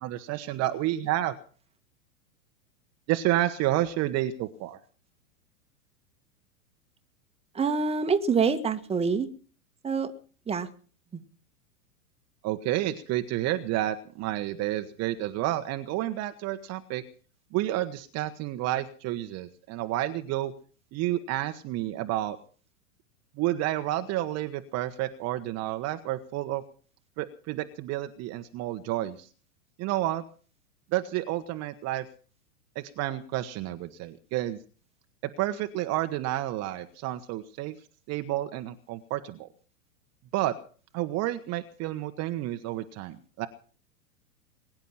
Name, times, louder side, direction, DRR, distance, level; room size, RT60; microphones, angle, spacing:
voice 1, 0.0-1.4 3.1-4.8 12.4-17.0 17.5-20.5 20.9-22.4 23.4-26.6 27.2-29.3 29.8-30.2 30.9-32.1 32.7-34.6 35.4-37.8 38.1-39.5 40.3-40.5 40.9-43.5, right 14 dB, 35° right, 9 dB, 1.3 m, -30 dB
voice 2, 7.5-9.3 9.8-10.1 10.5-10.7, right 5 dB, 15° right, 8 dB, 1.7 m, -25 dB
22.5 x 10.5 x 5.7 m, 0.41 s
hypercardioid pair, 110°, 43 cm